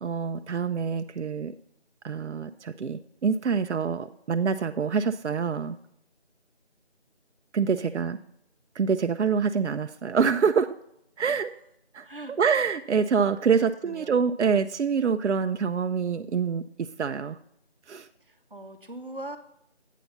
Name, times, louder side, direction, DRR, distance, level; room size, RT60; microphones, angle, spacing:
voice 1, 0.0-1.5 2.0-5.8 7.5-8.2 8.8-10.7 11.2-11.5 11.9-12.1 12.4-17.4 17.9-18.1, right 6 dB, 85° right, 9 dB, 0.5 m, -26 dB
voice 2, 7.7-8.0 11.2-11.3 12.0-12.3 13.5-14.2 18.2-19.4, right 1 dB, 50° right, 7 dB, 1.0 m, -41 dB
8.3 x 4.0 x 6.8 m, 0.75 s
figure-of-eight pair, 180°, 34 cm